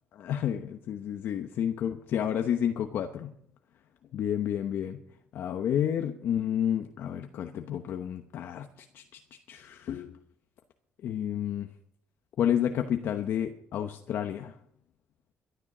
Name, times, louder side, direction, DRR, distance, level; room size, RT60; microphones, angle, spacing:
voice 1, 0.2-3.3 4.1-5.0 5.3-8.7 8.9-9.0 9.5-10.2 11.0-11.7 12.4-14.5, left 9 dB, 65° left, 6 dB, 0.9 m, -30 dB
12.5 x 11.5 x 6.1 m, 0.71 s
cardioid pair, 120°, 4 cm